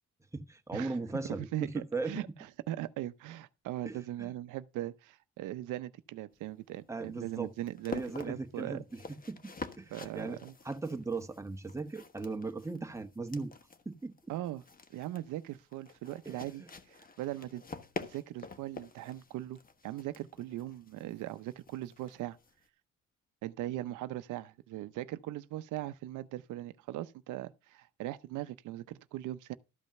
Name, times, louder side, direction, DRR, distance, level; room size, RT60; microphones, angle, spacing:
voice 1, 0.3-2.3 3.8-4.3 6.9-7.5 7.9-10.4 10.6-13.5 13.8-14.3 16.2-16.7, right 3 dB, 10° right, 1.1 m, -38 dB
voice 2, 1.5-2.3 2.7-8.8 9.9-10.5 14.3-14.6 14.9-17.6 18.0-22.4 23.4-29.5, right 14 dB, 90° right, 0.7 m, -40 dB
sound 1, 6.3-22.7, left 4 dB, 30° left, 1.3 m, -48 dB
13.0 x 5.3 x 5.8 m
cardioid pair, 90°, 30 cm